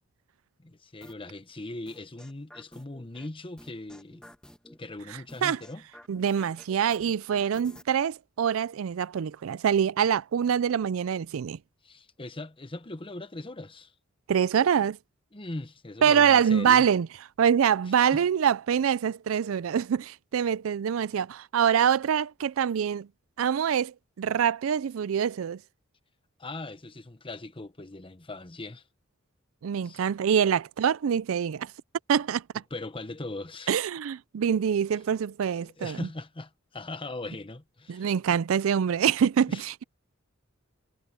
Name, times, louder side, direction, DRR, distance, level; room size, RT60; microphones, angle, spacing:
voice 1, 0.6-4.2 4.6-5.8 11.8-13.9 15.3-16.9 17.9-18.2 26.4-28.8 29.8-30.0 32.7-33.7 35.6-38.4 39.5-39.6, left 2 dB, 25° left, 1.1 m, -40 dB
sound 1, 1.0-1.3 1.9-3.3 3.6-4.8 5.3-7.8, equal, 5° left, 1.3 m, -51 dB
voice 2, 6.1-11.6 14.3-15.0 16.0-17.1 17.4-23.1 23.4-25.6 29.6-31.7 32.1-32.4 33.7-36.1 37.9-39.8, right 8 dB, 80° right, 0.4 m, -25 dB
head